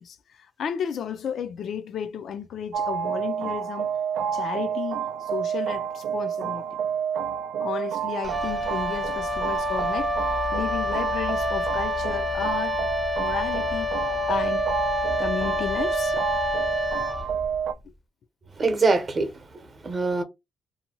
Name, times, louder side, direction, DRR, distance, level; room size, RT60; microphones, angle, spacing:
voice 1, 0.0-3.9 4.3-6.6 7.6-10.1 10.5-12.8 13.2-13.9 14.3-14.6 15.2-16.2, left 8 dB, 65° left, 0.4 m, -33 dB
sound 1, 2.7-17.7, right 8 dB, 85° right, 0.3 m, -29 dB
Wind instrument woodwind instrument, 8.2-17.7, left 4 dB, 10° left, 0.5 m, -29 dB
voice 2, 18.6-20.2, right 3 dB, 35° right, 0.8 m, -24 dB
2.7 x 2.2 x 2.8 m
cardioid pair, 90°, 0 cm